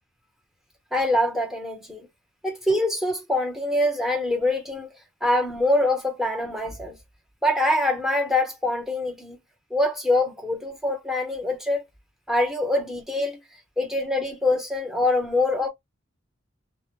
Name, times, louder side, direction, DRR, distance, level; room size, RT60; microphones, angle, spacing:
voice 1, 0.9-2.1 2.4-4.9 5.2-7.0 7.4-9.4 9.7-11.8 12.3-13.4 13.8-15.7, left 1 dB, ahead, 0.7 m, -24 dB
2.1 x 2.0 x 2.9 m
head